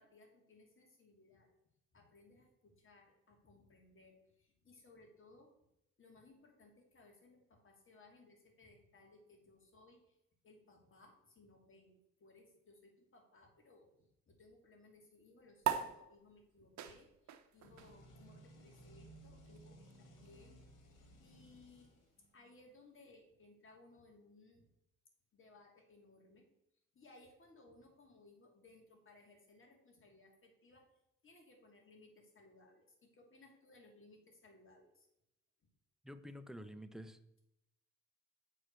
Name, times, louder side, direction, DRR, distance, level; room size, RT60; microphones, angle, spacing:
voice 1, 0.0-1.5 1.9-5.5 6.0-10.2 10.4-20.6 21.2-22.0 22.3-24.6 25.3-26.4 26.9-30.8 31.2-35.1, left 2 dB, 40° left, 2 dB, 2.5 m, -63 dB
sound 1, 15.6-22.4, right 9 dB, 65° right, 0.8 m, -44 dB
sound 2, 17.6-22.5, right 1 dB, 90° left, 1.9 m, -59 dB
voice 2, 36.0-37.2, equal, ahead, 9 dB, 0.7 m, -49 dB
7.5 x 4.8 x 6.6 m, 0.84 s
cardioid pair, 90°, 30 cm